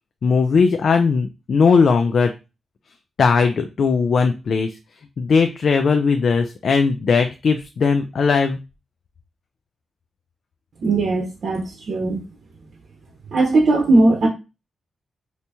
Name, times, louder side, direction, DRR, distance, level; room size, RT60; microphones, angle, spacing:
voice 1, 0.2-2.3 3.2-4.8 5.2-8.6, left 5 dB, 50° left, 6 dB, 0.3 m, -18 dB
voice 2, 10.8-12.2 13.3-14.3, right 2 dB, 55° right, 0 dB, 0.8 m, -18 dB
2.8 x 2.8 x 3.3 m, 0.28 s
wide cardioid pair, 160°, 0 cm